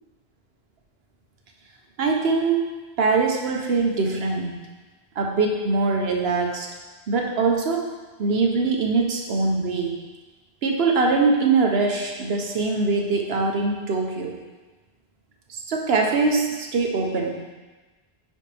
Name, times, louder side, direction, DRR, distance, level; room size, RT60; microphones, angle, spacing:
voice 1, 2.0-2.7 3.0-4.5 5.2-6.7 7.1-7.9 8.2-9.9 10.6-14.3 15.5-17.4, right 4 dB, 75° right, 2 dB, 1.1 m, -22 dB
9.7 x 4.4 x 3.3 m, 1.2 s
omnidirectional pair, 1.0 m